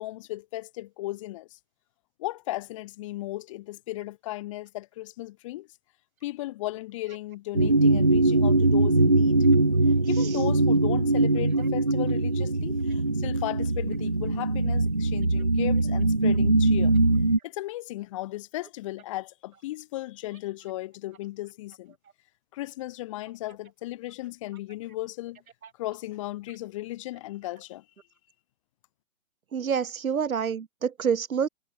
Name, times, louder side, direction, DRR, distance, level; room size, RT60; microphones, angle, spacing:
voice 1, 0.0-1.6 2.2-5.7 6.2-9.4 10.1-16.9 17.4-21.9 22.5-25.4 25.8-27.8, left 17 dB, 20° left, 3.0 m, -36 dB
sound 1, 7.5-17.4, right 2 dB, 30° right, 0.4 m, -22 dB
voice 2, 29.5-31.5, right 7 dB, 75° right, 1.9 m, -27 dB
hypercardioid pair, 170°, 42 cm